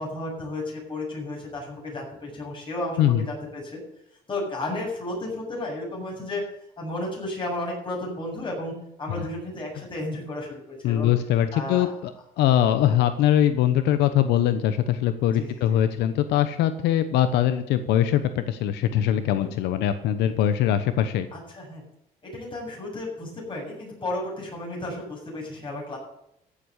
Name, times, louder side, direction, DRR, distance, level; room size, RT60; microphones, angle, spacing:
voice 1, 0.0-3.8 4.3-6.4 6.8-8.7 9.0-11.1 11.5-11.9 15.3-15.8 19.4-19.5 21.3-21.8 22.3-26.0, left 2 dB, 30° left, -1 dB, 7.8 m, -33 dB
voice 2, 10.8-12.1 12.4-21.3, left 11 dB, 85° left, 10 dB, 1.0 m, -22 dB
15.0 x 7.7 x 8.2 m, 0.77 s
cardioid pair, 110°, 17 cm